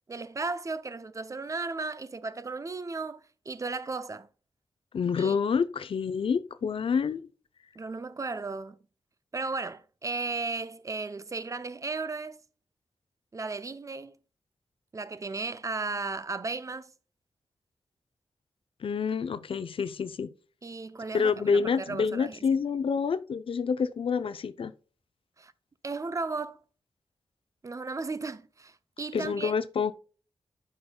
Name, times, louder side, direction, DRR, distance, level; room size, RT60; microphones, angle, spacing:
voice 1, 0.1-4.3 5.2-5.4 7.8-8.9 9.3-12.4 13.3-14.2 14.9-16.9 20.6-22.4 25.4-25.5 25.8-26.6 27.6-29.5, right 3 dB, 35° right, 0.4 m, -35 dB
voice 2, 4.9-7.3 18.8-20.3 21.1-24.7 29.1-29.9, left 6 dB, 65° left, 0.5 m, -28 dB
11.0 x 5.2 x 2.2 m
wide cardioid pair, 90°, 10 cm